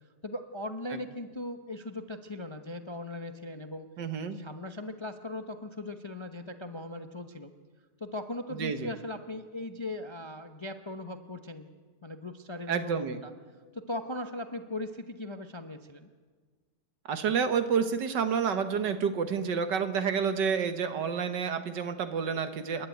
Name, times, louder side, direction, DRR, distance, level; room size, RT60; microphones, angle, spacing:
voice 1, 0.2-3.9 4.3-7.5 8.0-11.7 12.0-13.3 13.7-16.1, left 1 dB, 25° left, 7 dB, 0.6 m, -39 dB
voice 2, 4.0-4.4 8.5-8.9 12.7-13.2 17.1-22.9, right 6 dB, 75° right, 9 dB, 1.9 m, -29 dB
28.5 x 11.0 x 9.2 m, 1.5 s
omnidirectional pair, 1.9 m